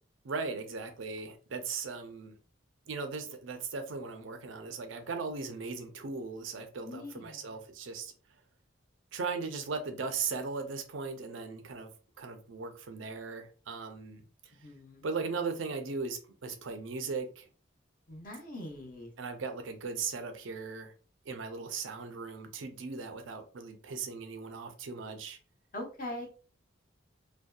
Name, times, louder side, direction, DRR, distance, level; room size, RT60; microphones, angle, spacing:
voice 1, 0.2-2.4 2.9-8.1 9.1-11.9 12.2-14.5 15.0-17.5 19.2-20.9 21.3-25.4, right 4 dB, 80° right, 0.5 m, -38 dB
voice 2, 6.8-7.4 14.5-15.0 18.1-19.1 25.7-26.3, left 1 dB, 45° left, 0.7 m, -42 dB
2.6 x 2.2 x 2.2 m
head